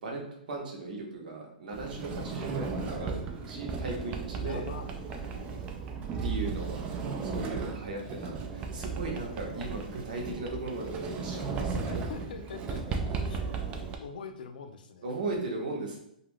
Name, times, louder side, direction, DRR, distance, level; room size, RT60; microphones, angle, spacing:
voice 1, 0.0-3.2 3.4-4.7 6.2-6.8 7.2-12.1 15.0-16.0, right 2 dB, 70° right, 0 dB, 0.9 m, -37 dB
Sliding door, 1.7-14.0, right 5 dB, 25° right, 0.3 m, -35 dB
voice 2, 4.3-4.9 11.7-13.0 13.3-13.4 14.0-15.1, left 5 dB, 75° left, 7 dB, 0.4 m, -42 dB
2.3 x 2.3 x 3.4 m, 0.77 s
hypercardioid pair, 135°, 5 cm